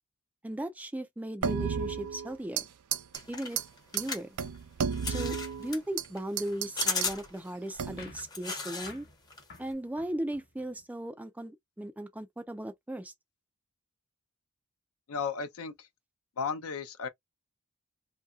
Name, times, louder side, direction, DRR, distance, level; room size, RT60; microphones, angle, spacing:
voice 1, 0.4-2.6 3.3-3.6 3.9-4.3 5.1-9.1 9.6-13.1, right 1 dB, 5° right, 0.3 m, -37 dB
sound 1, 1.4-2.7 2.9-3.2 3.6-3.7 4.0-4.1 4.4-6.1 6.4-7.1 7.8-8.2, right 7 dB, 85° right, 0.4 m, -32 dB
sound 2, 3.1-9.0 9.3-9.7, left 4 dB, 20° left, 0.7 m, -36 dB
sound 3, 8.0-10.9, left 3 dB, 45° left, 1.1 m, -53 dB
voice 2, 15.1-15.9 16.4-17.1, left 5 dB, 65° left, 0.6 m, -34 dB
2.7 x 2.6 x 2.3 m
head